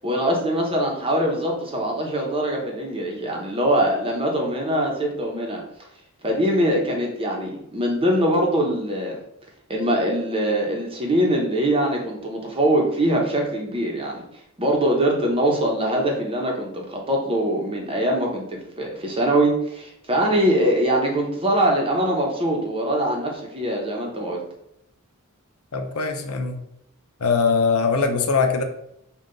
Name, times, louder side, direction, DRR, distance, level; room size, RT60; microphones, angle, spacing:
voice 1, 0.0-5.6 6.2-9.2 9.7-14.2 14.6-24.4, right 1 dB, 25° right, 0 dB, 0.9 m, -22 dB
voice 2, 25.7-26.6 27.2-28.6, left 5 dB, 75° left, 5 dB, 0.6 m, -21 dB
5.6 x 2.4 x 3.8 m, 0.78 s
head